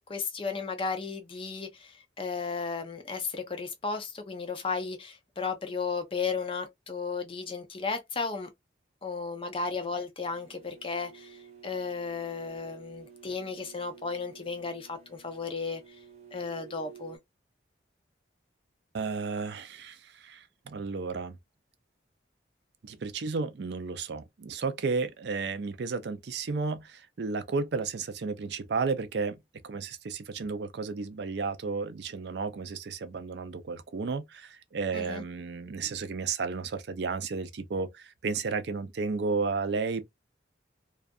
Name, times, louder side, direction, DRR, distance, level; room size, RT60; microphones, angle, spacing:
voice 1, 0.1-8.5 9.0-15.8 16.3-17.2 34.9-35.2, left 4 dB, 30° left, 0.4 m, -34 dB
sound 1, 10.2-17.2, right 7 dB, 35° right, 1.0 m, -52 dB
voice 2, 18.9-21.4 22.8-29.4 29.6-40.0, right 4 dB, 60° right, 0.4 m, -33 dB
2.4 x 2.3 x 2.5 m
head